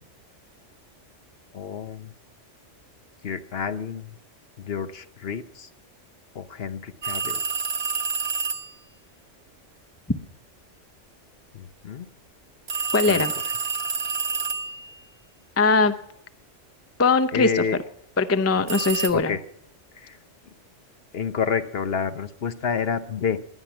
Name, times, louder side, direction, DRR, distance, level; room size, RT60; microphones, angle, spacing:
voice 1, 1.5-2.1 3.2-4.2 4.6-5.7 6.3-7.4 11.5-12.1 12.7-13.2 17.3-17.8 19.1-19.4 20.0-20.2 21.1-23.4, left 6 dB, 55° left, 10 dB, 1.0 m, -29 dB
Western Electric Princess Telephone Ringing, 7.0-8.7 12.7-15.0 18.7-19.1, right 5 dB, 55° right, 1.7 m, -28 dB
voice 2, 12.9-13.3 15.6-15.9 17.0-17.6 18.2-19.3, left 4 dB, 15° left, 10 dB, 0.5 m, -20 dB
19.0 x 11.0 x 6.1 m, 0.76 s
omnidirectional pair, 1.3 m